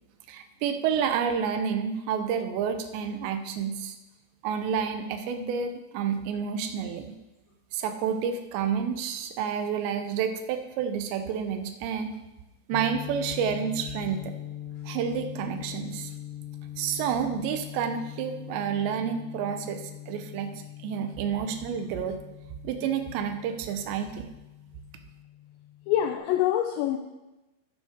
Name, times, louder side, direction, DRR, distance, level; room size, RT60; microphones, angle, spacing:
voice 1, 0.3-4.0 4.4-7.2 7.7-12.1 12.7-14.3 14.9-16.1 16.8-20.5 20.8-22.2 22.6-24.3, right 7 dB, 80° right, 7 dB, 2.6 m, -29 dB
sound 1, 12.7-26.2, left 12 dB, 35° left, 2.4 m, -42 dB
voice 2, 25.9-27.0, left 11 dB, 85° left, 5 dB, 2.5 m, -25 dB
10.5 x 9.2 x 3.6 m, 1.0 s
omnidirectional pair, 5.6 m